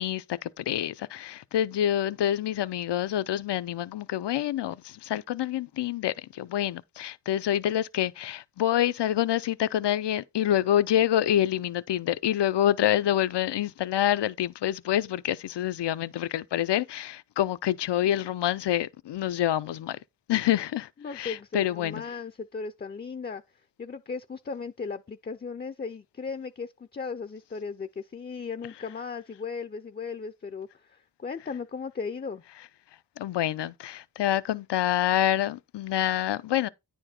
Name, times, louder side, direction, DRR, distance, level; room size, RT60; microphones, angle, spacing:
voice 1, 0.0-20.0 20.3-22.0 33.2-36.7, left 12 dB, 80° left, 0.6 m, -27 dB
voice 2, 21.0-23.4 23.8-32.4, left 5 dB, 25° left, 0.5 m, -36 dB
9.8 x 4.4 x 4.3 m
wide cardioid pair, 110°, 41 cm